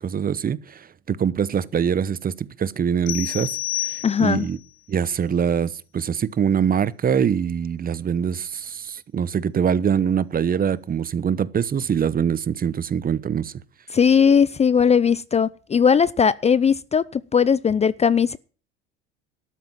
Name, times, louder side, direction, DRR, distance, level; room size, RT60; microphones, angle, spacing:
voice 1, 0.0-3.5 3.8-4.6 4.9-13.5, right 7 dB, 30° right, 0.9 m, -23 dB
sound 1, 3.1-4.6, left 16 dB, 70° left, 1.5 m, -29 dB
voice 2, 4.0-4.5 13.9-18.4, left 6 dB, 20° left, 0.5 m, -18 dB
13.0 x 9.1 x 7.4 m
hypercardioid pair, 80°, 29 cm